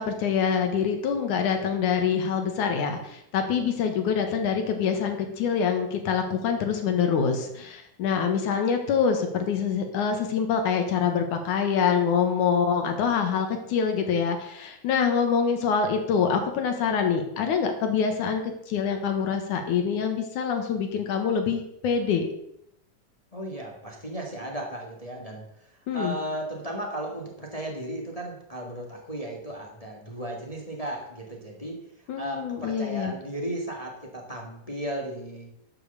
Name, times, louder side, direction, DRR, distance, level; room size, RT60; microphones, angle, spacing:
voice 1, 0.0-22.3 25.9-26.2 32.1-33.1, left 6 dB, 65° left, 5 dB, 2.7 m, -25 dB
voice 2, 23.3-31.8 32.2-35.5, right 1 dB, 20° left, -1 dB, 0.9 m, -35 dB
12.0 x 6.2 x 6.8 m, 0.78 s
omnidirectional pair, 4.0 m